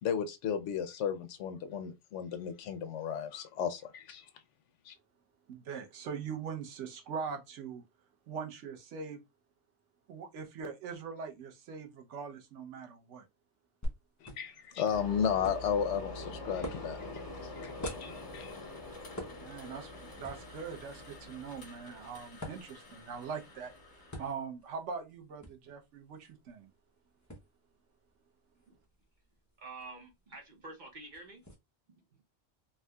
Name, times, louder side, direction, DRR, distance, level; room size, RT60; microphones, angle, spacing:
voice 1, 0.0-4.3 4.9-5.0 14.2-17.2 17.6-18.5, left 8 dB, 90° left, 0.9 m, -34 dB
voice 2, 5.5-7.8 8.3-9.2 10.1-13.2 19.4-26.7, right 6 dB, 90° right, 1.0 m, -42 dB
sound 1, 13.8-31.5, equal, 20° left, 0.5 m, -48 dB
sound 2, 14.9-24.3, left 2 dB, 70° left, 1.4 m, -46 dB
voice 3, 29.6-31.4 31.9-32.0, right 3 dB, 50° right, 0.7 m, -48 dB
3.5 x 2.6 x 2.2 m
omnidirectional pair, 1.2 m